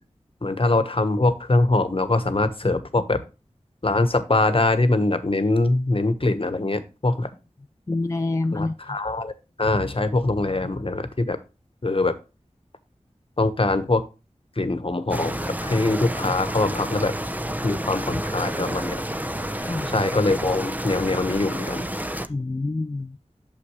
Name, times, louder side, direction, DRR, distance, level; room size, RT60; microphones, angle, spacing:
voice 1, 0.4-3.2 3.8-7.3 8.5-9.3 9.6-11.4 11.8-12.1 13.4-14.0 14.6-17.1 17.6-19.0 19.9-21.8, left 2 dB, 50° left, 1.2 m, -23 dB
voice 2, 7.9-9.0 19.6-19.9 22.3-23.2, left 2 dB, 25° left, 0.4 m, -27 dB
sound 1, 15.1-22.3, right 1 dB, 15° right, 0.7 m, -30 dB
8.6 x 6.7 x 3.2 m
wide cardioid pair, 50°, 12 cm